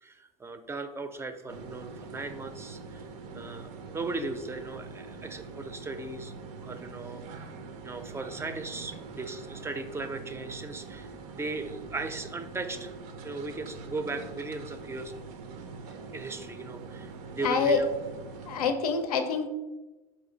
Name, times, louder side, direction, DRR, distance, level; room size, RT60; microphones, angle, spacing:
voice 1, 0.0-3.1 3.3-6.3 6.6-7.5 7.8-12.9 13.2-15.2 15.9-17.9, right 3 dB, 15° right, 8 dB, 0.4 m, -37 dB
sound 1, 1.5-18.7, right 4 dB, 70° right, 0.5 m, -44 dB
voice 2, 17.4-17.8 18.5-19.5, left 5 dB, 90° left, 7 dB, 0.5 m, -26 dB
4.1 x 2.6 x 3.8 m, 1.1 s
hypercardioid pair, 90°, 19 cm